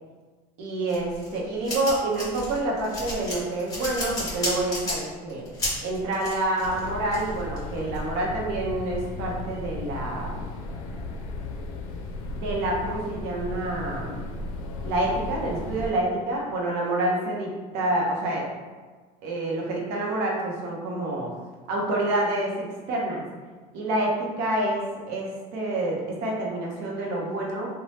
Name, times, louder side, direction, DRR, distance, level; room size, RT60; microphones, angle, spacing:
voice 1, 0.6-5.4 5.8-10.5 12.3-14.2 14.8-18.5 19.2-21.3 21.7-23.2 23.7-27.7, right 1 dB, 75° right, -3 dB, 0.8 m, -28 dB
sound 1, 0.9-8.0, left 1 dB, 20° left, 1.3 m, -32 dB
sound 2, 6.6-15.9, left 2 dB, 90° left, 0.4 m, -35 dB
3.2 x 2.2 x 2.8 m, 1.4 s
cardioid pair, 125°, 17 cm